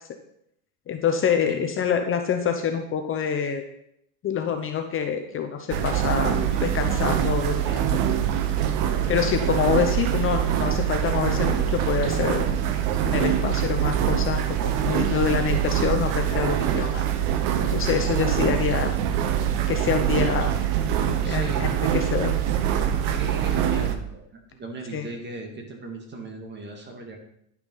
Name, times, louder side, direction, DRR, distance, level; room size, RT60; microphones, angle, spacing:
voice 1, 0.9-3.6 4.2-6.3 6.6-8.0 9.1-12.5 13.0-17.0 17.7-18.9 19.7-20.5 21.2-22.3 24.9-25.0, left 7 dB, 30° left, 6 dB, 0.8 m, -26 dB
sound 1, 5.7-24.0, right 9 dB, 70° right, 1.1 m, -24 dB
voice 2, 20.2-20.5 21.2-21.7 23.1-27.2, right 2 dB, 25° right, 2 dB, 2.2 m, -37 dB
10.5 x 5.9 x 5.5 m, 0.75 s
supercardioid pair, 135°, 40 cm